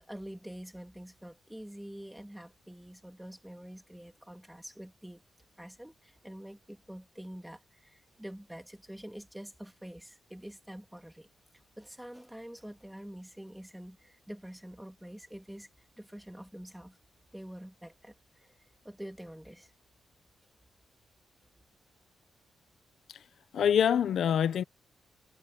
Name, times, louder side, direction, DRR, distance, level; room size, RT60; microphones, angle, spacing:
voice 1, 0.0-5.2 5.6-11.3 11.8-15.7 16.0-17.0 17.3-18.5 18.8-19.7, equal, 5° right, 2.1 m, -46 dB
voice 2, 23.5-24.6, left 8 dB, 60° left, 0.7 m, -25 dB
wide cardioid pair, 180°, 0 cm